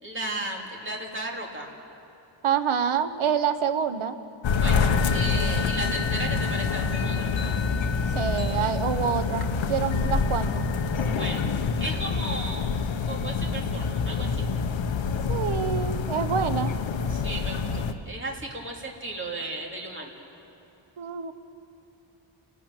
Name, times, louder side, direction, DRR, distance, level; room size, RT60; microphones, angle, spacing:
voice 1, 0.0-1.7 4.6-7.5 11.2-11.5 11.8-12.7 13.1-14.4 17.1-20.1, right 2 dB, 25° right, -1 dB, 2.6 m, -35 dB
voice 2, 2.4-4.2 8.1-10.7 15.3-16.7 21.0-21.3, right 8 dB, 80° right, 10 dB, 1.1 m, -27 dB
sound 1, 4.4-17.9, left 5 dB, 65° left, 1.1 m, -26 dB
29.5 x 12.0 x 8.9 m, 2.8 s
wide cardioid pair, 170°, 49 cm